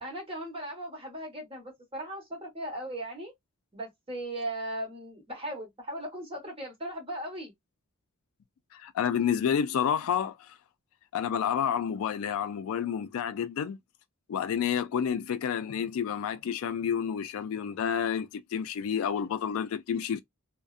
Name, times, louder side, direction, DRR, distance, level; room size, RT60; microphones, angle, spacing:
voice 1, 0.0-3.3 3.7-7.5, right 1 dB, 25° right, 1.2 m, -38 dB
voice 2, 8.7-10.6 11.1-13.8 14.3-20.2, left 8 dB, 65° left, 0.3 m, -29 dB
2.6 x 2.1 x 2.3 m
head